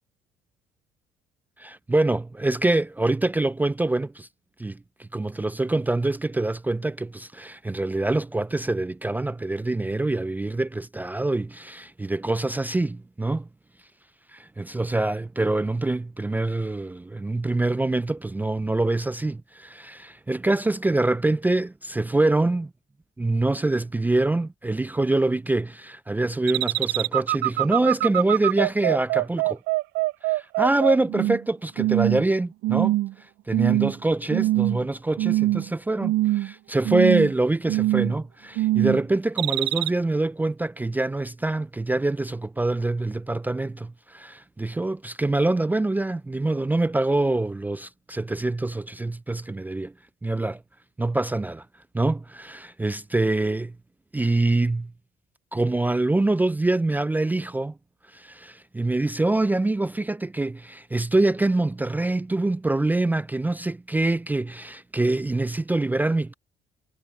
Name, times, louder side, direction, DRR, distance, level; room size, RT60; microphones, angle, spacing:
voice 1, 1.6-4.3 4.6-13.5 14.3-22.7 23.2-29.6 30.3-33.0 33.5-49.9 50.2-50.6 51.0-51.7 51.9-53.8 54.1-54.9 55.5-57.8 58.1-66.3, right 2 dB, 10° right, 0.4 m, -25 dB
sound 1, 26.5-31.4 31.8-32.3 32.6-33.1 33.5-33.9 34.3-34.9 35.2-35.7 36.0-36.5 36.8-37.3 37.7-38.2 38.6-39.0 39.4-39.9, right 17 dB, 85° right, 0.5 m, -23 dB
cardioid pair, 110°, 17 cm